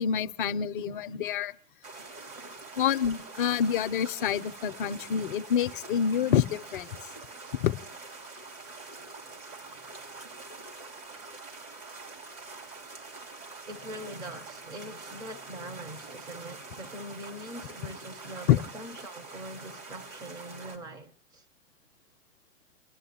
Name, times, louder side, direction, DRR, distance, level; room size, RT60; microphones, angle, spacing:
voice 1, 0.0-1.5 2.8-6.9 7.6-7.8 18.5-18.6, left 9 dB, 45° left, 0.5 m, -27 dB
sound 1, 1.8-20.8, right 3 dB, 80° right, 3.4 m, -45 dB
voice 2, 2.2-2.7 9.6-9.8 13.7-21.4, right 1 dB, 10° right, 0.4 m, -43 dB
29.5 x 11.0 x 2.8 m
hypercardioid pair, 120°, 39 cm